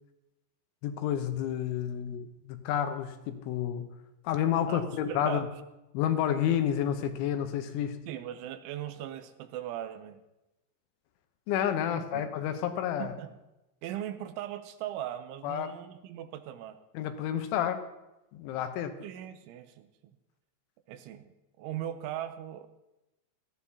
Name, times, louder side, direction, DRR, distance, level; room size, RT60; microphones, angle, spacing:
voice 1, 0.8-3.9 4.2-5.5 5.9-8.0 11.5-13.1 15.4-15.7 16.9-17.8 18.3-19.0, left 10 dB, 80° left, 7 dB, 3.3 m, -30 dB
voice 2, 4.7-5.5 8.1-10.2 11.9-12.3 13.0-13.4 13.8-16.8 19.0-20.1 20.9-22.7, right 11 dB, 85° right, 10 dB, 3.1 m, -39 dB
18.0 x 14.0 x 2.8 m, 0.97 s
omnidirectional pair, 5.5 m